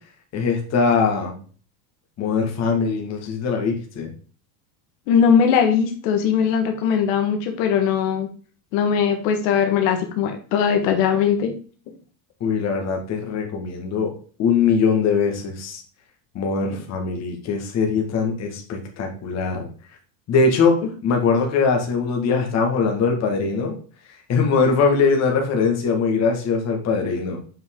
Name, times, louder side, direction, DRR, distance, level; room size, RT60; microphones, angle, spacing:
voice 1, 0.3-1.3 2.2-4.1 12.4-14.1 14.4-15.8 16.3-19.7 20.3-20.8 21.0-23.7 24.3-27.4, left 5 dB, 30° left, 2 dB, 1.9 m, -21 dB
voice 2, 5.1-8.3 8.7-11.5, left 7 dB, 70° left, 4 dB, 1.6 m, -20 dB
7.7 x 5.4 x 3.7 m, 0.40 s
cardioid pair, 170°, 49 cm